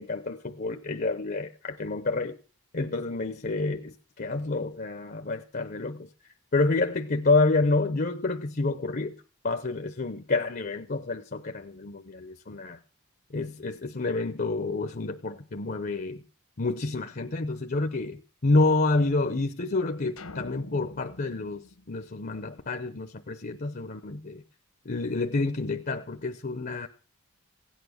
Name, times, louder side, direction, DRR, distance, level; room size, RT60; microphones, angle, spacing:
voice 1, 0.0-2.4 2.7-6.1 6.5-9.1 9.4-12.8 13.3-16.2 16.6-24.4 24.8-26.9, left 3 dB, 45° left, 0.8 m, -28 dB
sound 1, 20.2-22.6, left 2 dB, 75° left, 1.4 m, -46 dB
16.5 x 9.3 x 6.4 m
head